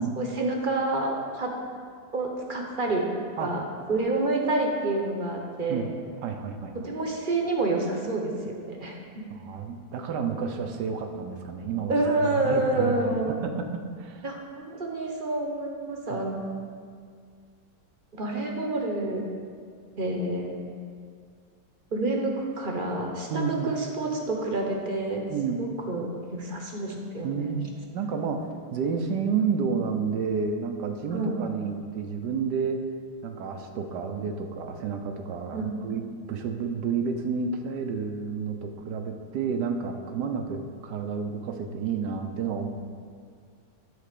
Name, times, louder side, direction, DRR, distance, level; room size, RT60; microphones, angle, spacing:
voice 1, 0.2-1.5 2.1-3.0 3.4-3.6 3.9-5.9 6.8-9.0 10.9-11.0 11.9-13.4 14.2-16.6 18.1-19.2 20.0-20.5 21.9-25.2 25.6-27.6 31.1-31.4 35.5-35.7, right 2 dB, 40° right, 1 dB, 0.9 m, -28 dB
voice 2, 6.2-6.7 9.4-12.0 12.2-14.3 16.1-16.2 23.3-23.8 25.3-25.7 27.2-28.4 28.7-32.8 33.2-42.7, right 5 dB, 85° right, 5 dB, 1.4 m, -30 dB
10.0 x 4.2 x 6.7 m, 2.1 s
omnidirectional pair, 1.8 m